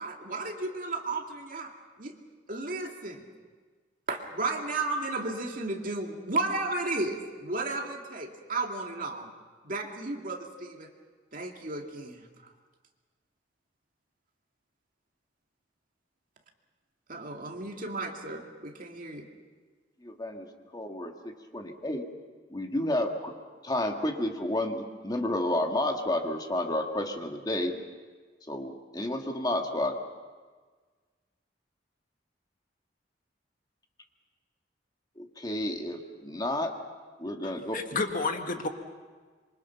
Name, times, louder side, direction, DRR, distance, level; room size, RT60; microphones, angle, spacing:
voice 1, 0.0-1.7 2.0-2.1 2.5-3.2 4.1-9.3 9.6-10.9 11.3-12.3 17.1-19.3, right 2 dB, 50° right, 2 dB, 2.3 m, -33 dB
voice 2, 20.0-20.5 20.7-22.1 22.5-23.3 23.6-27.8 28.5-30.0 35.2-36.7 37.2-37.7, left 1 dB, 20° left, 3 dB, 1.8 m, -31 dB
voice 3, 37.4-38.7, left 3 dB, 50° left, 5 dB, 1.8 m, -31 dB
26.5 x 24.0 x 5.8 m, 1.4 s
head